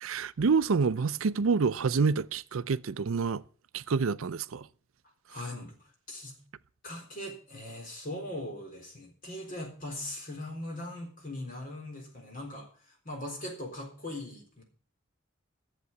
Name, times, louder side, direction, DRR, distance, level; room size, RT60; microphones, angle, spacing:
voice 1, 0.0-3.4 3.7-4.7, right 5 dB, 80° right, 0.5 m, -27 dB
voice 2, 5.3-6.4 6.8-14.6, left 1 dB, 40° left, 4.0 m, -40 dB
11.0 x 7.5 x 8.1 m
head